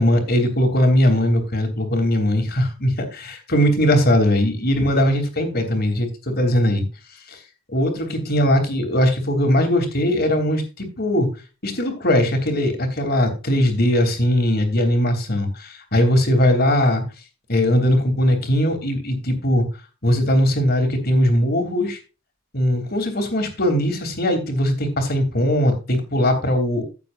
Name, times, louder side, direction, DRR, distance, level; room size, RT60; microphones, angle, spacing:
voice 1, 0.0-6.8 7.3-7.4 7.7-11.3 11.6-17.0 17.5-19.6 20.0-22.0 22.5-26.8, left 1 dB, 50° left, 5 dB, 3.2 m, -20 dB
15.5 x 7.6 x 2.6 m, 0.31 s
head